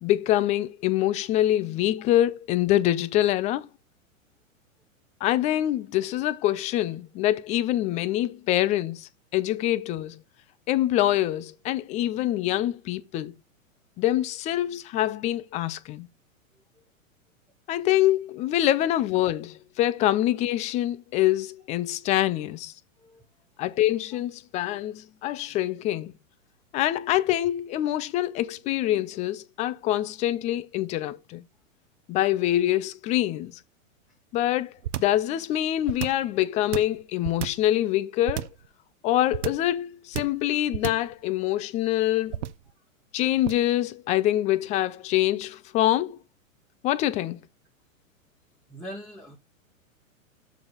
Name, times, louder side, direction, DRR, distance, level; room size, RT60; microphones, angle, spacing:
voice 1, 0.0-3.7 5.2-10.2 10.7-13.3 14.0-16.1 17.7-22.7 23.6-26.1 26.7-31.4 32.1-33.5 34.3-34.7 35.0-38.5 39.0-42.5 43.1-46.2 46.8-47.4, left 13 dB, 20° left, 0.4 m, -25 dB
sound 1, 34.8-35.2 35.8-36.3 36.7-37.7 38.3-38.7 39.3-39.7 40.1-40.4 40.7-41.1 42.3-42.7 43.4-43.7, right 13 dB, 55° right, 0.7 m, -31 dB
voice 2, 48.7-49.4, equal, ahead, 1.1 m, -41 dB
6.9 x 5.1 x 4.0 m
hypercardioid pair, 120°, 41 cm